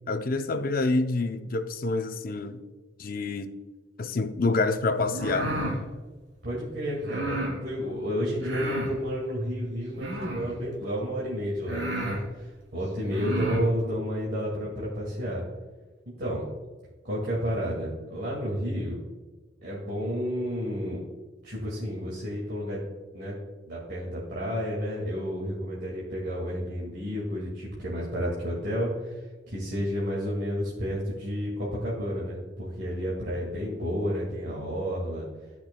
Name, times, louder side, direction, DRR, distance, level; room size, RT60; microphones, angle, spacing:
voice 1, 0.1-2.6 3.0-3.5 4.0-5.5, left 3 dB, 50° left, 0.6 m, -27 dB
sound 1, 5.0-5.8 7.0-7.6 8.4-9.0 10.0-10.6 11.2-11.3 11.7-12.2 13.0-13.7, right 1 dB, 90° right, 2.5 m, -31 dB
voice 2, 6.4-15.4 16.2-16.5 17.0-19.0 19.6-21.0 21.4-22.8 23.1-23.3 23.7-35.3, equal, 60° right, 2.1 m, -31 dB
15.5 x 6.0 x 2.3 m
head